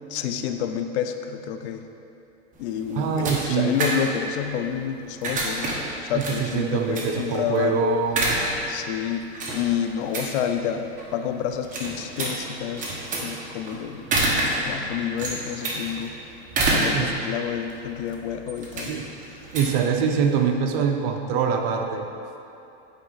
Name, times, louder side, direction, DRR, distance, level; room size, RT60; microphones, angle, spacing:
voice 1, 0.1-1.9 2.6-7.8 8.7-9.3 9.5-14.0 14.6-16.1 16.7-19.0 19.3-19.4, left 8 dB, 80° left, 7 dB, 0.6 m, -29 dB
sound 1, 2.5-20.5, right 2 dB, 25° right, 1.2 m, -29 dB
voice 2, 3.0-3.8 6.1-8.4 16.9-17.2 18.9-19.1 19.5-22.1, right 6 dB, 50° right, 4 dB, 0.8 m, -24 dB
8.9 x 4.8 x 4.0 m, 2.8 s
supercardioid pair, 140°, 33 cm